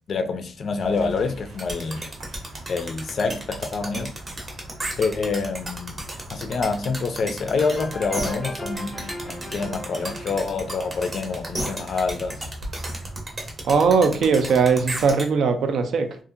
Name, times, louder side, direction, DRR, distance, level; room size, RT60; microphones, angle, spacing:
voice 1, 0.1-2.0 2.7-4.1 5.0-6.0 6.3-9.0 9.3-12.4, left 4 dB, 50° left, 0.4 m, -26 dB
sound 1, 0.8-14.9, right 1 dB, 85° right, 1.0 m, -41 dB
sound 2, 1.6-15.3, right 1 dB, 25° right, 0.7 m, -33 dB
sound 3, 7.5-12.1, left 1 dB, 15° left, 0.6 m, -39 dB
voice 2, 13.6-16.2, right 5 dB, 70° right, 0.4 m, -19 dB
2.7 x 2.4 x 2.4 m
cardioid pair, 140°, 0 cm